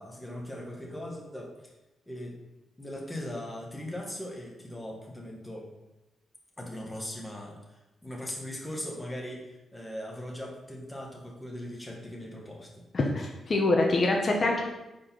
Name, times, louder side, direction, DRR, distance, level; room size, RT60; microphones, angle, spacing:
voice 1, 0.0-1.7 2.1-2.4 2.8-5.7 6.6-12.8, left 1 dB, 10° left, -1 dB, 1.8 m, -39 dB
voice 2, 12.9-14.6, left 2 dB, 45° left, 0 dB, 1.1 m, -25 dB
4.8 x 4.8 x 5.8 m, 1.0 s
cardioid pair, 65°, 0 cm